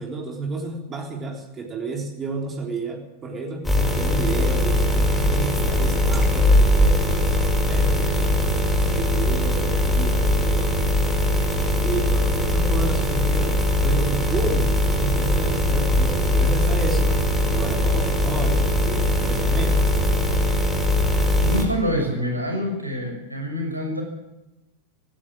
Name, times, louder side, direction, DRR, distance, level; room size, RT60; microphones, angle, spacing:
voice 1, 0.0-10.9 11.8-20.1, right 3 dB, 25° right, 1 dB, 3.7 m, -31 dB
sound 1, 3.6-21.6, left 1 dB, 5° left, 6.2 m, -20 dB
voice 2, 21.4-24.0, left 1 dB, 85° right, 2 dB, 6.6 m, -26 dB
17.5 x 16.5 x 9.0 m, 0.98 s
figure-of-eight pair, 90°, 0 cm